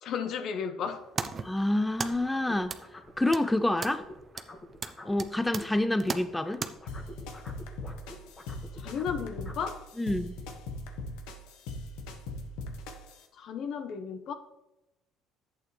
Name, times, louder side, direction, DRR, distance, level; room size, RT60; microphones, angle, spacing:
voice 1, 0.0-1.1 8.7-9.8 13.3-14.3, left 7 dB, 55° left, 1.0 m, -34 dB
sound 1, 0.8-6.7, right 5 dB, 30° right, 0.7 m, -39 dB
voice 2, 1.4-2.7 3.2-4.0 5.0-6.6 10.0-10.4, left 1 dB, 10° left, 0.5 m, -27 dB
sound 2, 2.1-5.8 6.0-9.8, left 2 dB, 25° left, 1.8 m, -48 dB
sound 3, 6.9-13.2, left 2 dB, 85° left, 1.3 m, -40 dB
11.0 x 8.7 x 3.3 m
cardioid pair, 110°, 0 cm